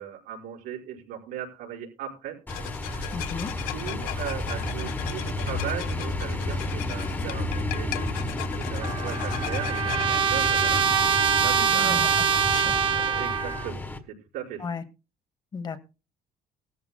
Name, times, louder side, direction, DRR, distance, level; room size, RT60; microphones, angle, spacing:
voice 1, 0.0-2.4 2.8-3.1 3.7-12.1 12.9-13.8 14.1-14.7, right 10 dB, 85° right, -1 dB, 5.2 m, -38 dB
sound 1, 2.5-12.8, left 16 dB, 85° left, 0.6 m, -39 dB
sound 2, 2.5-14.0, left 2 dB, 15° left, 1.5 m, -31 dB
voice 2, 3.1-3.5 11.7-12.1 12.5-12.7 14.6-14.8 15.5-15.8, left 5 dB, 30° left, 10 dB, 1.2 m, -34 dB
Trumpet, 8.8-13.7, right 8 dB, 35° right, 1.0 m, -24 dB
18.5 x 13.5 x 2.3 m, 0.30 s
cardioid pair, 150°, 15 cm